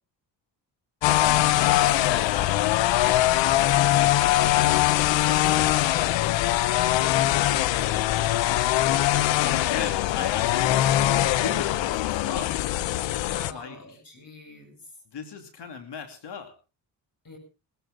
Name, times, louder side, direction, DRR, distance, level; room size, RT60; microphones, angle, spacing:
sound 1, 1.0-13.5, left 14 dB, 90° left, 0.8 m, -22 dB
voice 1, 1.3-2.7 4.4-5.9 7.2-8.0 9.4-12.8 13.5-14.0 15.1-16.5, left 6 dB, 65° left, 6 dB, 2.9 m, -37 dB
voice 2, 4.8-5.1 9.4-9.9 13.3-14.8 17.2-17.4, left 2 dB, 50° left, 3 dB, 7.9 m, -45 dB
20.5 x 14.0 x 3.8 m, 0.33 s
supercardioid pair, 60°, 44 cm